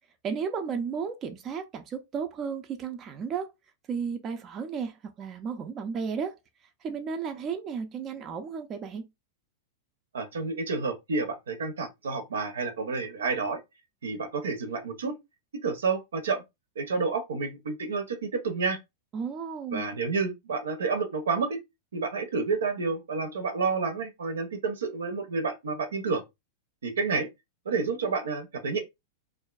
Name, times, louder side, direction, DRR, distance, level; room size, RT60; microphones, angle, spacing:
voice 1, 0.2-3.5 3.9-6.4 6.8-9.1 19.1-19.9, right 6 dB, 30° right, 0.4 m, -33 dB
voice 2, 10.1-13.6 14.0-15.2 15.6-16.4 16.8-18.8 19.7-21.6 21.9-26.2 26.8-27.3 27.7-28.8, right 4 dB, 85° right, 0.7 m, -29 dB
2.6 x 2.2 x 2.3 m
hypercardioid pair, 110°, 0 cm